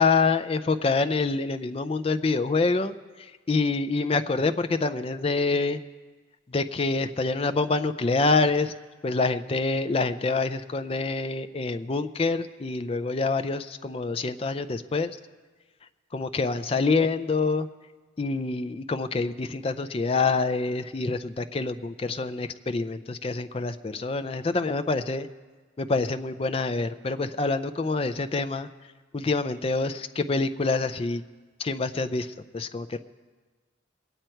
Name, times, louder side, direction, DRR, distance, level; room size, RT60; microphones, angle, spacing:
voice 1, 0.0-5.8 6.5-8.7 9.0-15.2 16.1-17.7 18.2-25.3 25.8-28.7 29.1-31.2 31.6-33.0, left 3 dB, 30° left, 10 dB, 0.4 m, -26 dB
21.5 x 9.1 x 4.4 m, 1.4 s
head